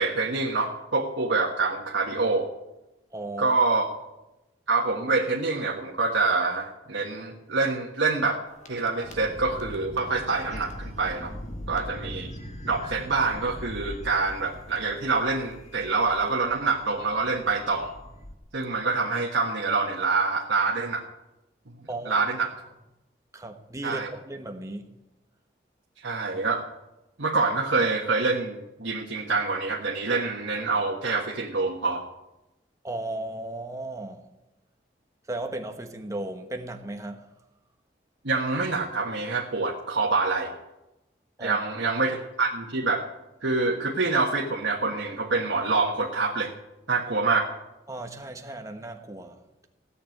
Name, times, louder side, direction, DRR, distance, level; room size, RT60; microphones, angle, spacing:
voice 1, 0.0-2.5 3.4-3.8 4.7-8.4 8.7-11.3 11.7-12.3 12.6-17.9 18.5-21.0 22.1-22.5 23.8-24.1 26.0-26.7 27.2-32.0 38.2-40.5 41.4-43.0 43.4-46.5 46.9-47.5, right 3 dB, 85° right, 1.4 m, -26 dB
voice 2, 3.1-3.5 21.9-22.2 23.3-24.9 32.8-34.3 35.3-37.3 41.4-41.6 47.9-49.7, right 2 dB, 15° right, 1.2 m, -36 dB
sound 1, 8.5-18.3, equal, 40° left, 1.6 m, -41 dB
16.5 x 6.9 x 9.1 m
head